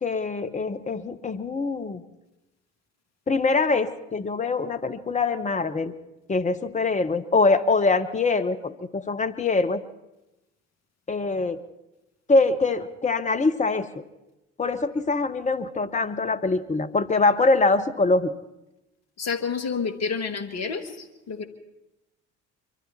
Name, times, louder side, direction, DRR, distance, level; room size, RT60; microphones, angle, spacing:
voice 1, 0.0-2.0 3.3-5.9 6.3-9.8 11.1-11.6 12.3-14.0 14.6-18.3, left 3 dB, 20° left, 9 dB, 1.2 m, -23 dB
voice 2, 19.2-21.4, left 5 dB, 45° left, 8 dB, 2.0 m, -29 dB
24.0 x 13.5 x 4.3 m, 0.95 s
figure-of-eight pair, 50°, 36 cm